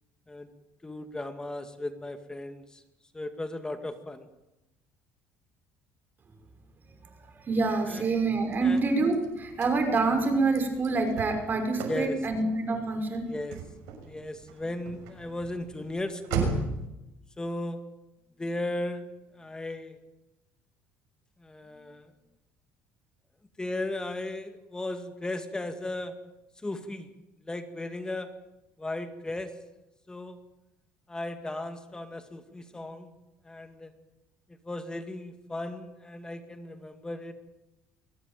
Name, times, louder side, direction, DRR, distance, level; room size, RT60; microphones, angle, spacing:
voice 1, 0.8-2.8 3.1-4.3 7.9-8.0 8.6-8.8 11.9-12.2 13.3-13.6 14.0-16.6 17.4-17.8 18.4-19.1 19.3-20.0 21.4-22.1 23.6-26.1 26.6-27.1 27.4-28.3 28.8-29.5 30.1-30.4 31.1-33.1 33.4-33.9 34.6-37.3, left 2 dB, 15° left, 8 dB, 2.2 m, -36 dB
voice 2, 7.3-13.3, right 3 dB, 35° right, 6 dB, 5.8 m, -26 dB
Car / Slam, 8.2-16.9, right 5 dB, 80° right, 6.4 m, -38 dB
22.5 x 18.5 x 9.2 m, 0.95 s
cardioid pair, 100°, 6 cm